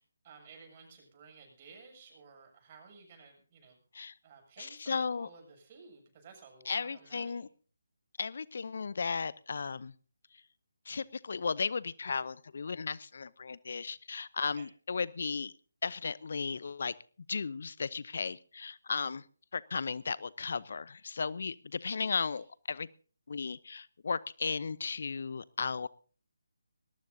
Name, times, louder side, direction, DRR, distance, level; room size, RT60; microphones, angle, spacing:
voice 1, 0.2-3.8 4.2-7.4 14.5-14.7, right 5 dB, 30° right, 3 dB, 7.7 m, -55 dB
voice 2, 4.6-5.3 6.7-7.5 8.2-9.9 10.9-15.5 15.8-16.9 17.3-19.2 19.5-22.9 23.3-25.9, left 5 dB, 50° left, 20 dB, 0.7 m, -35 dB
21.0 x 19.5 x 2.7 m, 0.40 s
figure-of-eight pair, 150°, 0 cm